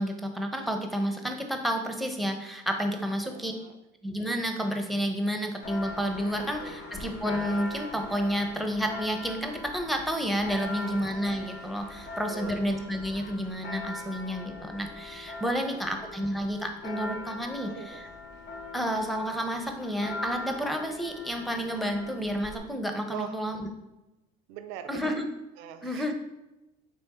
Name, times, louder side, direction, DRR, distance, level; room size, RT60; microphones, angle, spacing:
voice 1, 0.0-3.5 4.0-18.1 18.7-23.7 24.9-25.3 25.8-26.1, equal, ahead, 4 dB, 0.7 m, -30 dB
voice 2, 3.2-3.8 6.3-6.9 10.6-11.0 12.0-12.8 15.7-15.9 17.6-18.1 23.1-23.4 24.5-25.2 25.6-26.1, right 9 dB, 75° right, 9 dB, 0.5 m, -43 dB
Church bell, 5.6-22.6, left 2 dB, 60° left, 0.9 m, -41 dB
3.5 x 3.3 x 4.2 m, 0.98 s
supercardioid pair, 80°, 20 cm